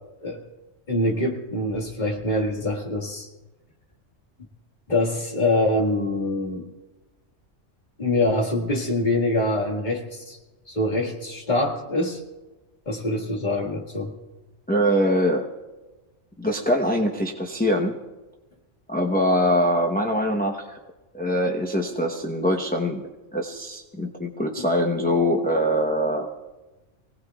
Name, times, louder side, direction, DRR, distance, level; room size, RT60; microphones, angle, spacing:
voice 1, 0.9-3.3 4.9-6.7 8.0-10.4 10.7-12.2 12.9-14.1, left 1 dB, 35° left, 0 dB, 2.0 m, -24 dB
voice 2, 14.7-15.5 16.4-18.0 18.9-20.8 21.1-23.0 23.3-26.3, equal, 10° left, 0 dB, 0.8 m, -23 dB
24.5 x 18.0 x 2.3 m, 1.1 s
omnidirectional pair, 1.3 m